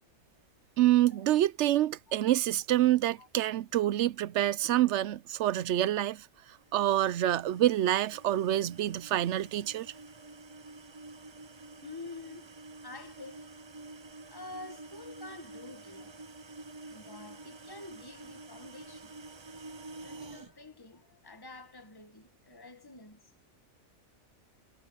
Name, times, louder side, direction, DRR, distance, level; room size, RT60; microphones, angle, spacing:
voice 1, 0.8-6.3 6.7-9.9, right 13 dB, 65° right, 0.8 m, -27 dB
sound 1, 6.6-20.5, right 2 dB, 35° right, 0.4 m, -49 dB
voice 2, 11.8-12.5 12.8-13.5 14.3-16.3 16.9-19.1 20.0-23.3, left 3 dB, 15° left, 1.7 m, -48 dB
omnidirectional pair, 1.4 m